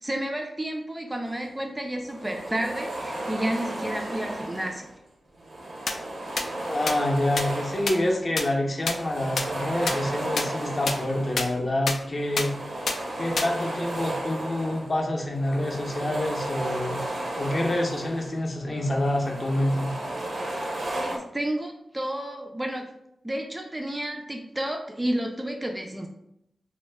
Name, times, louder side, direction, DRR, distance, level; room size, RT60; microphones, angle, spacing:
voice 1, 0.0-4.9 20.9-22.9 23.2-26.1, right 1 dB, 15° right, 2 dB, 0.3 m, -31 dB
sound 1, 1.3-1.5 1.9-5.0 5.3-8.4 8.7-11.7 12.0-18.4 18.8-21.2, right 1 dB, 60° right, 0.6 m, -34 dB
sound 2, 5.9-6.0 6.4-6.5 6.9-7.0 7.4-7.5 7.9-8.0 8.4-8.5 8.9-9.0 9.4-9.5 9.9-10.0 10.4-10.5 10.9-11.0 11.4-11.5 11.9-12.0 12.4-12.5 12.9-13.0 13.4-13.5, left 4 dB, 85° left, 0.3 m, -25 dB
voice 2, 6.6-12.5 13.2-17.0 17.4-19.9, left 1 dB, 40° left, -1 dB, 0.6 m, -27 dB
3.0 x 2.1 x 3.3 m, 0.78 s
wide cardioid pair, 115°, 0 cm